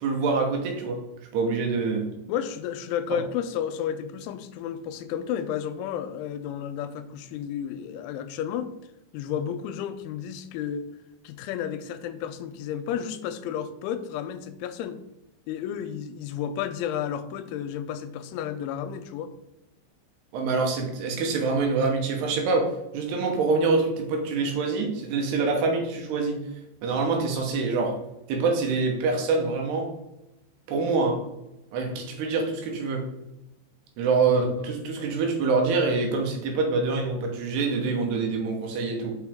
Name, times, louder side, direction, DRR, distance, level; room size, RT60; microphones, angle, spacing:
voice 1, 0.0-1.0 1.3-2.1 3.1-3.2 20.3-26.4 26.8-28.0 28.3-29.9 30.7-31.2 31.7-33.1 34.0-39.2, right 4 dB, 70° right, 2 dB, 2.7 m, -25 dB
voice 2, 2.3-8.7 9.1-10.9 11.2-15.0 15.5-19.3, left 9 dB, 85° left, 11 dB, 3.0 m, -32 dB
6.4 x 5.4 x 3.5 m, 0.90 s
omnidirectional pair, 5.5 m